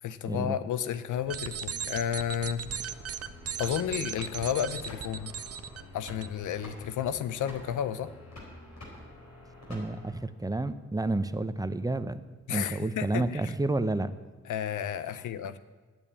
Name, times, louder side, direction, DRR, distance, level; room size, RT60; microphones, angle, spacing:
voice 1, 0.0-2.6 3.6-5.3 5.9-8.1 12.5-13.5 14.4-15.6, left 9 dB, 85° left, 13 dB, 0.6 m, -32 dB
sound 1, 1.2-6.3, right 8 dB, 55° right, 0.6 m, -37 dB
sound 2, 2.6-10.3, left 1 dB, 65° left, 4.4 m, -48 dB
voice 2, 9.7-12.2 12.5-14.1, right 2 dB, 10° right, 12 dB, 0.8 m, -30 dB
8.9 x 8.8 x 8.6 m, 1.4 s
supercardioid pair, 50°, 30 cm